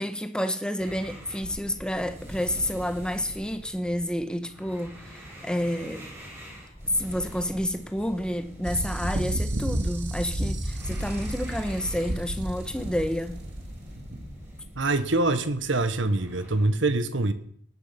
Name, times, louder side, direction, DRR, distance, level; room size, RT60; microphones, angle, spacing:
voice 1, 0.0-6.1 6.9-13.4, equal, 5° left, 1.1 m, -30 dB
sound 1, 0.8-16.7, equal, 15° right, 5.9 m, -44 dB
sound 2, 8.6-14.5, right 1 dB, 60° right, 2.4 m, -31 dB
voice 2, 14.7-17.3, right 2 dB, 80° right, 1.3 m, -24 dB
19.0 x 9.8 x 5.9 m
head